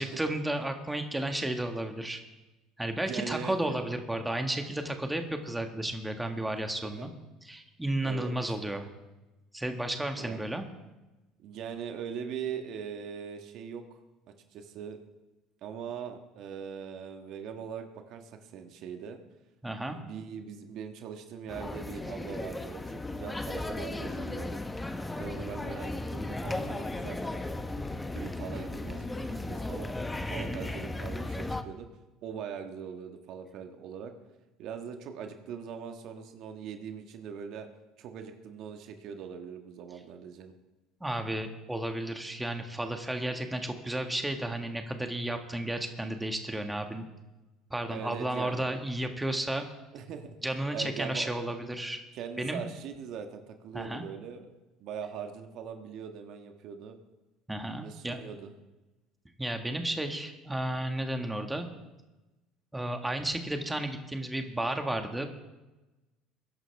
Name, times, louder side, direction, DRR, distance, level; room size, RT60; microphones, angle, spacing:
voice 1, 0.0-2.2 2.8-7.1 7.5-8.9 9.5-10.6 19.6-20.0 30.3-30.6 41.0-47.1 47.7-49.7 50.4-52.0 52.4-52.7 53.7-54.0 57.5-58.2 59.4-61.7 62.7-65.3, right 1 dB, 10° right, 5 dB, 1.8 m, -33 dB
voice 2, 3.0-3.9 6.8-7.1 8.0-8.3 10.1-10.4 11.4-14.0 14.5-15.0 15.6-19.2 19.9-22.8 23.1-24.6 25.1-27.2 28.1-29.1 29.4-31.9 32.2-34.1 34.6-37.7 38.0-40.5 47.9-48.6 49.9-50.4 50.7-51.4 52.1-54.5 54.8-57.0 57.8-58.5, right 7 dB, 60° right, 5 dB, 1.6 m, -41 dB
sound 1, 21.5-31.6, left 2 dB, 15° left, 1.2 m, -36 dB
22.0 x 11.0 x 3.5 m, 1.1 s
hypercardioid pair, 65°, 0 cm